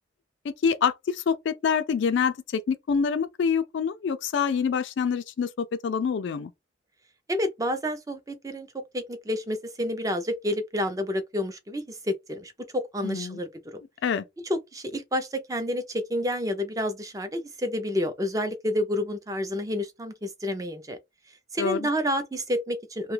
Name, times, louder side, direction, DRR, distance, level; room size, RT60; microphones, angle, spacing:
voice 1, 0.4-6.5 13.0-13.4 14.0-14.2 21.6-21.9, left 6 dB, 70° left, 0.3 m, -26 dB
voice 2, 7.3-13.8 14.4-21.0 21.5-23.1, left 1 dB, 15° right, 0.5 m, -29 dB
2.7 x 2.3 x 3.2 m
head